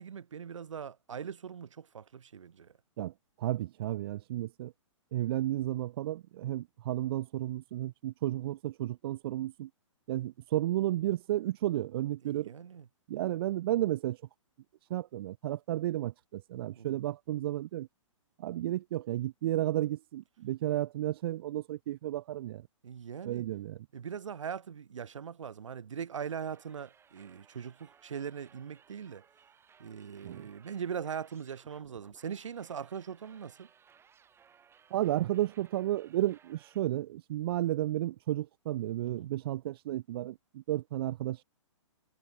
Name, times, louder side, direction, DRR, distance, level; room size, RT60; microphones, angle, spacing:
voice 1, 0.0-2.7 12.2-12.9 16.8-17.0 22.8-23.4 23.9-29.2 29.8-33.7 39.0-39.3, right 7 dB, 70° right, 2.4 m, -41 dB
voice 2, 3.4-4.7 5.1-9.7 10.1-12.5 13.1-14.2 14.9-17.9 18.4-22.7 23.2-23.8 30.2-30.4 34.9-41.4, right 14 dB, 50° right, 0.6 m, -32 dB
sound 1, 26.1-36.8, right 7 dB, 15° right, 6.4 m, -62 dB
hypercardioid pair, 125°, 16 cm